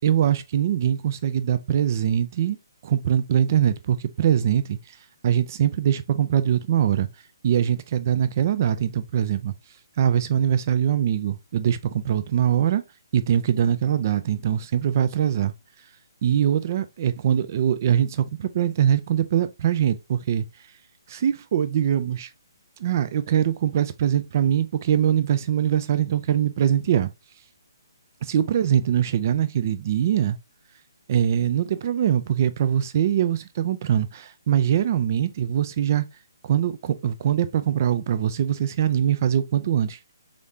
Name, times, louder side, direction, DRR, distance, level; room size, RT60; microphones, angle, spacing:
voice 1, 0.0-2.6 2.8-5.0 5.2-7.1 7.4-9.5 10.0-12.8 13.1-15.5 16.2-20.4 21.1-22.3 22.8-27.1 28.2-30.4 31.1-36.1 36.4-40.0, right 9 dB, 45° right, 0.3 m, -22 dB
3.7 x 3.4 x 2.6 m
figure-of-eight pair, 145°, 2 cm